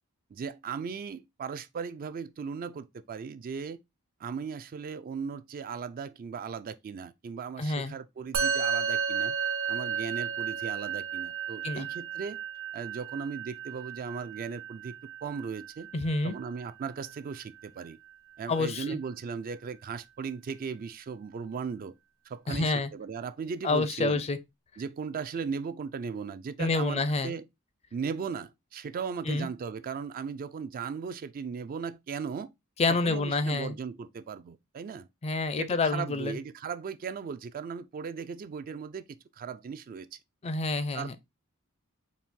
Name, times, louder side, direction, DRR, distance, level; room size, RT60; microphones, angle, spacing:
voice 1, 0.3-3.8 4.2-9.4 9.7-12.4 12.7-14.9 15.2-15.9 16.2-18.0 18.4-21.9 22.3-24.2 24.8-27.5 27.9-32.5 32.9-35.1 35.6-39.0 39.4-40.2 40.9-41.2, right 6 dB, 40° right, 0.3 m, -37 dB
voice 2, 7.6-7.9 11.6-11.9 15.9-16.3 18.5-19.0 22.5-22.9 23.6-24.4 26.6-27.3 29.3-29.5 32.8-33.8 35.2-36.4 40.4-41.2, left 3 dB, 30° left, 0.4 m, -28 dB
Musical instrument, 8.3-17.9, right 7 dB, 70° right, 1.1 m, -34 dB
4.2 x 2.5 x 3.6 m
head